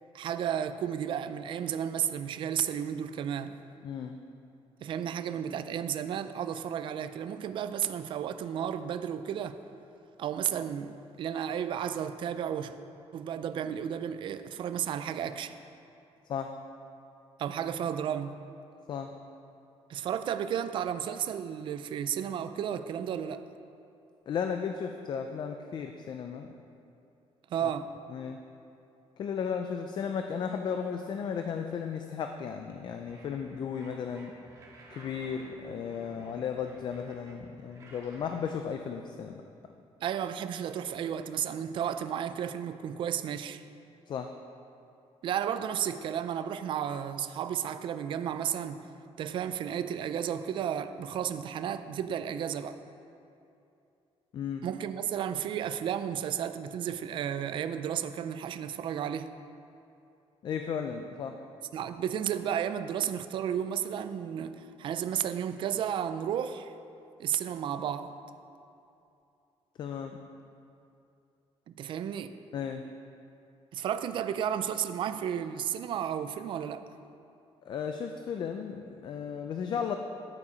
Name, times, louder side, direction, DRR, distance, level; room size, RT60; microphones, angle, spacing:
voice 1, 0.1-3.6 4.8-9.6 10.2-12.8 13.1-15.6 17.4-18.4 19.9-23.4 27.5-27.9 40.0-43.6 45.2-48.8 49.2-52.8 54.6-59.3 61.7-66.7 67.2-68.1 71.7-72.3 73.7-76.9, right 9 dB, 50° right, 11 dB, 0.4 m, -33 dB
voice 2, 3.8-4.2 16.3-16.5 18.9-19.1 24.3-26.5 27.6-27.7 28.1-28.4 29.2-34.3 34.9-39.4 44.1-44.3 54.3-54.7 60.4-61.4 69.8-70.2 72.5-72.8 77.7-80.0, left 7 dB, 40° left, 5 dB, 0.4 m, -35 dB
sound 1, 33.0-38.5, right 2 dB, 30° right, 1.8 m, -53 dB
9.9 x 8.3 x 5.0 m, 2.7 s
cardioid pair, 180°, 11 cm